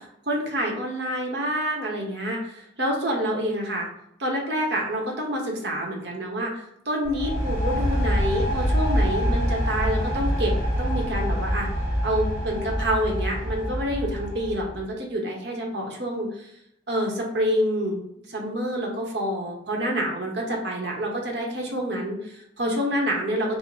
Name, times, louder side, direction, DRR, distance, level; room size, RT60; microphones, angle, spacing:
voice 1, 0.3-3.9 4.2-10.5 10.8-11.7 12.0-16.5 16.9-18.0 18.3-23.6, equal, 60° right, 0 dB, 0.9 m, -27 dB
sound 1, 7.0-14.8, equal, 15° left, 1.0 m, -25 dB
4.9 x 2.0 x 3.9 m, 0.76 s
head